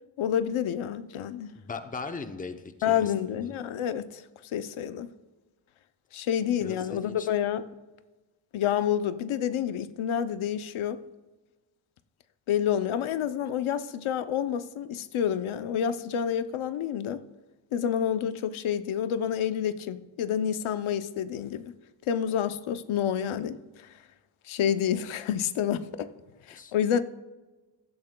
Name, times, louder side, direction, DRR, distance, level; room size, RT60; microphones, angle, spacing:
voice 1, 0.2-1.5 2.8-4.2 4.5-5.1 6.1-7.7 8.5-11.0 12.5-17.2 17.7-21.7 22.1-23.6 24.5-26.1 26.5-27.0, left 9 dB, 80° left, 0.7 m, -28 dB
voice 2, 1.5-3.5 6.6-7.3 26.6-26.7, left 4 dB, 15° left, 0.6 m, -39 dB
15.5 x 12.0 x 2.2 m
wide cardioid pair, 140°, 48 cm